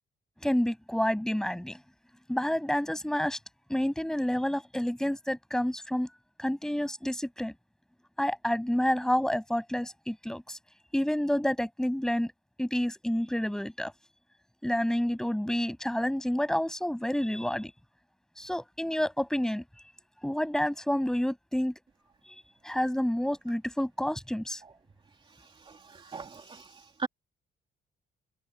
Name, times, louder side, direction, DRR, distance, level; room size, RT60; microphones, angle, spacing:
voice 1, 0.4-1.8 2.3-3.4 3.7-6.1 6.4-7.5 8.2-10.6 10.9-12.3 12.6-13.9 14.6-17.7 18.4-19.6 20.2-21.7 22.6-24.6, equal, 5° left, 7.0 m, -29 dB
voice 2, 25.6-27.1, right 4 dB, 30° right, 3.0 m, -39 dB
cardioid pair, 140°, 18 cm